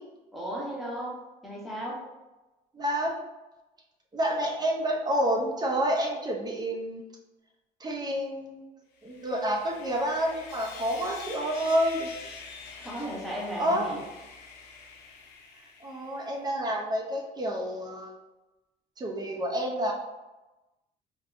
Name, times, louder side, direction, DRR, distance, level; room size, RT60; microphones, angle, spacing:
voice 1, 0.3-2.0 12.8-14.0, equal, ahead, -5 dB, 0.9 m, -35 dB
voice 2, 2.7-3.1 4.1-7.0 7.8-8.7 9.0-12.1 13.6-13.9 15.8-18.1 19.0-19.9, equal, 25° right, 0 dB, 0.4 m, -29 dB
Sawing, 9.0-16.4, left 4 dB, 85° left, 0.5 m, -46 dB
3.4 x 2.1 x 2.4 m, 1.1 s
cardioid pair, 110°, 17 cm